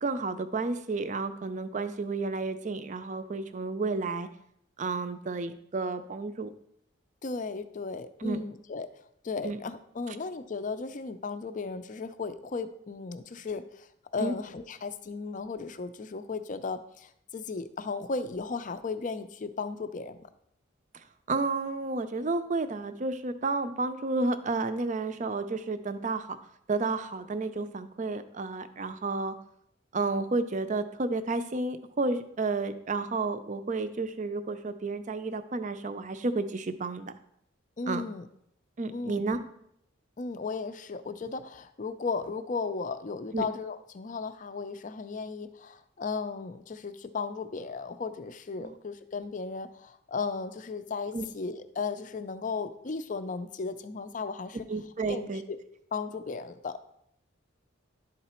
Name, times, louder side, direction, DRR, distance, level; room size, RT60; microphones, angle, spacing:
voice 1, 0.0-4.3 4.8-6.5 8.2-8.4 9.4-9.6 10.1-10.2 14.2-14.4 20.9-26.4 26.7-29.3 29.9-37.1 37.9-38.0 38.8-39.4 43.3-43.5 48.6-48.7 51.1-51.3 54.7-55.4, right 3 dB, 40° right, 10 dB, 0.5 m, -31 dB
voice 2, 7.2-8.9 9.2-13.9 14.1-20.2 37.8-38.3 38.9-39.2 40.2-54.7 55.1-55.6 55.9-56.8, left 4 dB, 40° left, 11 dB, 0.4 m, -35 dB
11.0 x 4.0 x 4.3 m, 0.74 s
head